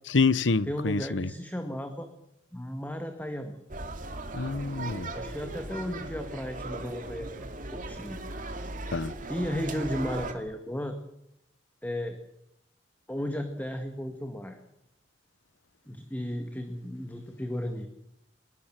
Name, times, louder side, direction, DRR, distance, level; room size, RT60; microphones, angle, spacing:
voice 1, 0.1-1.3 4.3-5.1 8.9-9.1, left 4 dB, 85° left, 0.9 m, -26 dB
voice 2, 0.7-2.1 2.5-3.6 5.1-8.2 8.9-11.0 11.8-12.2 13.1-14.6 15.9-17.9, equal, 10° left, 1.9 m, -35 dB
sound 1, 3.7-10.3, right 2 dB, 45° right, 2.8 m, -38 dB
22.0 x 22.0 x 7.6 m
head